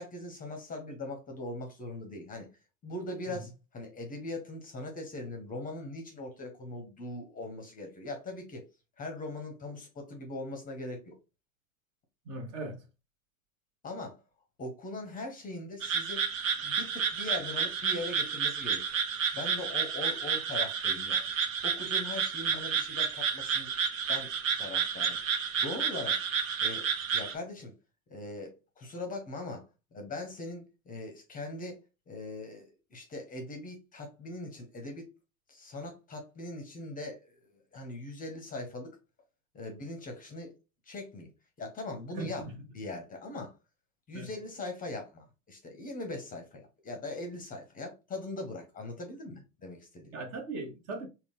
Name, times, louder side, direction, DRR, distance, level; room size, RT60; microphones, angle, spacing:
voice 1, 0.0-2.5 2.8-8.6 9.0-11.1 13.8-14.2 14.6-16.3 16.6-18.8 19.3-21.3 21.6-23.7 24.1-24.3 24.6-25.2 25.6-26.2 26.6-27.7 28.1-29.7 29.9-31.8 32.1-35.0 35.5-39.0 39.5-40.5 40.9-41.3 41.6-42.5 42.7-43.5 44.1-50.2, left 2 dB, 20° left, 0.8 m, -40 dB
voice 2, 12.2-12.8 42.2-42.5 44.1-44.3 50.1-51.1, right 3 dB, 35° right, 1.3 m, -39 dB
sound 1, 15.8-27.3, right 6 dB, 65° right, 0.8 m, -31 dB
3.8 x 2.3 x 3.6 m
hypercardioid pair, 95°, 42 cm